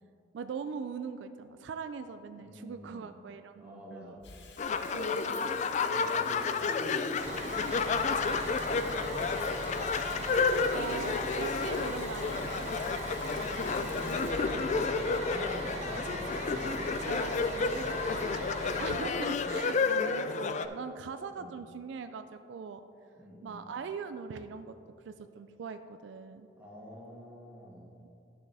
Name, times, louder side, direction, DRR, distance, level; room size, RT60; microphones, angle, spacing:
voice 1, 0.3-4.2 4.9-5.5 10.7-12.7 17.0-17.5 18.8-22.8 23.4-24.8 25.1-26.5 28.0-28.1, right 6 dB, 70° right, 9 dB, 0.3 m, -41 dB
voice 2, 2.4-3.0 3.6-4.2 5.7-10.0 13.6-17.0 17.4-18.4 21.3-21.6 23.2-23.7 26.6-27.9, left 1 dB, 10° right, -5 dB, 1.5 m, -46 dB
Water tap faucet / Sink (filling or washing), 4.2-16.6, left 4 dB, 65° left, 0.8 m, -53 dB
sound 1, 4.6-20.7, left 4 dB, 40° left, 0.3 m, -31 dB
Bus, 7.2-19.0, right 1 dB, 35° right, 0.9 m, -40 dB
11.5 x 6.5 x 3.4 m, 2.7 s
head